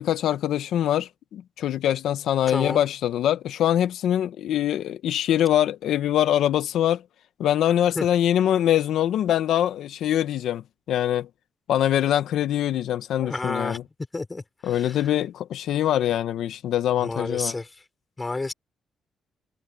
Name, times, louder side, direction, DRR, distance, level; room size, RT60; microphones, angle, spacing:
voice 1, 0.0-7.0 7.4-11.3 11.7-13.8 14.6-17.6, left 11 dB, 80° left, 0.9 m, -23 dB
voice 2, 2.5-2.8 7.9-8.0 13.2-13.8 14.1-15.1 17.0-17.7 18.2-18.5, left 3 dB, 20° left, 4.7 m, -31 dB
cardioid pair, 140°, 0 cm